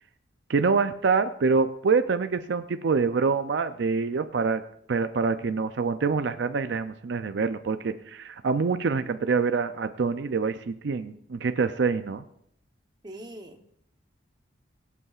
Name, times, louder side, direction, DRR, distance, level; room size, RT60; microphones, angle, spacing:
voice 1, 0.5-4.6 4.9-12.2, right 4 dB, 60° right, 10 dB, 0.4 m, -26 dB
voice 2, 13.0-13.8, right 1 dB, 20° right, 5 dB, 0.9 m, -43 dB
23.0 x 8.3 x 2.4 m, 0.71 s
head